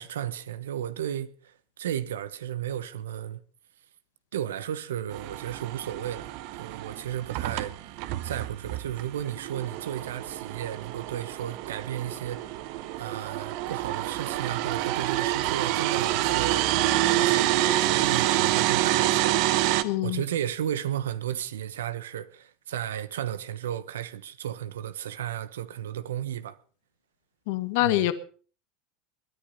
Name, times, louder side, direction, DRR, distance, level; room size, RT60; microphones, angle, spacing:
voice 1, 0.0-3.4 4.3-7.9 8.2-12.4 13.0-16.7 17.1-19.5 20.0-26.6 27.8-28.1, right 10 dB, 90° right, 1.0 m, -34 dB
sound 1, 5.1-19.8, right 15 dB, 65° right, 1.2 m, -27 dB
voice 2, 19.8-20.2 27.5-28.1, left 17 dB, 70° left, 1.4 m, -25 dB
20.5 x 10.5 x 5.4 m
hypercardioid pair, 100°, 0 cm